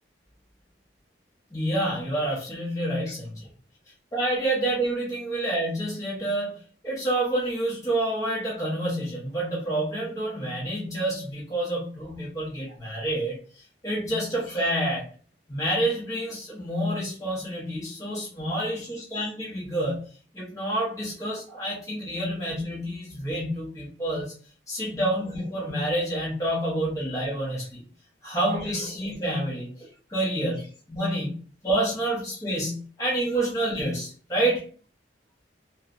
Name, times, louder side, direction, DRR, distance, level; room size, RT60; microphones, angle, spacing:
voice 1, 1.5-3.5 4.1-6.6 6.8-13.4 13.8-15.1 15.5-20.1 20.3-24.3 24.7-27.8 28.2-34.6, right 1 dB, 20° left, -6 dB, 0.8 m, -28 dB
3.1 x 2.1 x 2.5 m, 0.42 s
head